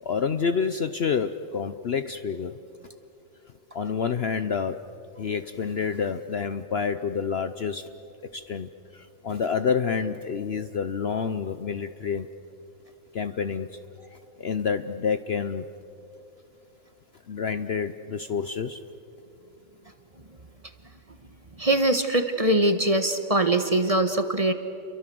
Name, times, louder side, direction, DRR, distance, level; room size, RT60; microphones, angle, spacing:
voice 1, 0.0-2.5 3.7-4.8 5.2-7.8 8.3-12.3 13.1-13.7 14.4-15.7 17.3-18.8, left 6 dB, 55° left, 10 dB, 0.8 m, -28 dB
voice 2, 21.6-24.5, right 1 dB, 25° right, 8 dB, 1.3 m, -22 dB
30.0 x 24.0 x 7.7 m, 2.8 s
omnidirectional pair, 1.5 m